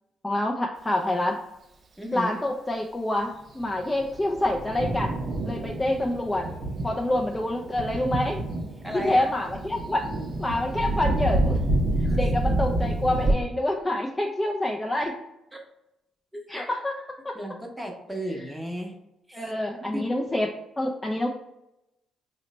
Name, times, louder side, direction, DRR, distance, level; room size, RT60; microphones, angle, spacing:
voice 1, 0.2-1.4 2.1-5.1 5.4-6.5 6.8-8.4 8.9-10.0 10.4-11.6 12.1-15.2 16.5-17.4 19.3-21.3, left 1 dB, 15° left, 0 dB, 0.3 m, -27 dB
voice 2, 2.0-2.3 8.8-9.3 12.0-12.2 15.5-15.6 16.3-16.4 17.3-18.9 19.3-19.4 19.8-20.0, equal, 5° right, 1 dB, 0.7 m, -34 dB
Thunder, 3.6-13.3, right 1 dB, 45° right, 0.5 m, -28 dB
3.1 x 2.0 x 4.0 m, 0.90 s
cardioid pair, 90°, 0 cm